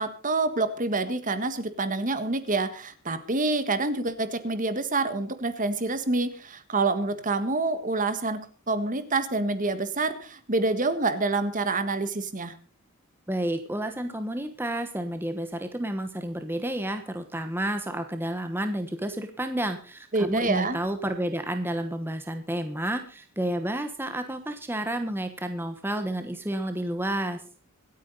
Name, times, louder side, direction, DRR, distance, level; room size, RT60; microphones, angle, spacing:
voice 1, 0.0-12.6 20.1-20.8, right 3 dB, 35° right, 11 dB, 1.5 m, -27 dB
voice 2, 13.3-27.4, right 1 dB, 10° right, 7 dB, 1.1 m, -30 dB
25.5 x 9.3 x 4.0 m, 0.37 s
head